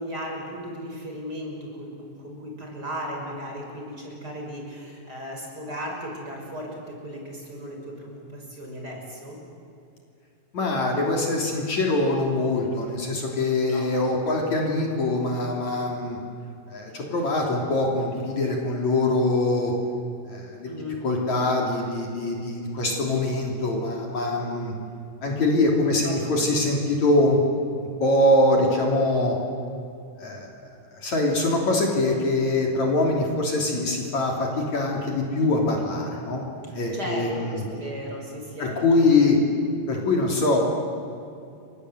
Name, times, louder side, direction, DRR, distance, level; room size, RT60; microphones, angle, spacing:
voice 1, 0.0-9.4 13.6-14.4 20.7-21.0 25.8-26.6 36.6-39.3, equal, 25° right, 0 dB, 6.0 m, -36 dB
voice 2, 10.5-16.2 16.7-19.7 20.3-20.7 21.0-24.7 25.2-27.4 28.0-29.4 30.2-30.5 30.9-36.4 36.7-37.6 38.6-39.4 39.9-40.6, left 2 dB, 50° left, 0 dB, 4.4 m, -23 dB
30.0 x 24.0 x 8.2 m, 2.6 s
omnidirectional pair, 4.2 m